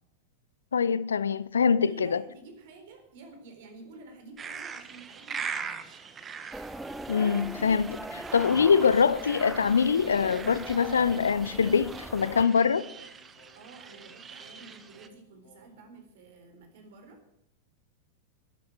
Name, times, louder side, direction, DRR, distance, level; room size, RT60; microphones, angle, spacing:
voice 1, 0.7-2.2 7.1-12.9, left 6 dB, 70° left, 0.6 m, -24 dB
voice 2, 1.8-6.0 13.5-17.2, right 3 dB, 55° right, 4.0 m, -50 dB
sound 1, 4.4-15.1, right 6 dB, 20° right, 1.2 m, -42 dB
sound 2, 6.5-12.5, right 1 dB, 5° right, 0.7 m, -40 dB
Singing, 9.0-15.9, right 1 dB, 55° left, 4.0 m, -58 dB
12.5 x 11.5 x 6.2 m
figure-of-eight pair, 90°, 0 cm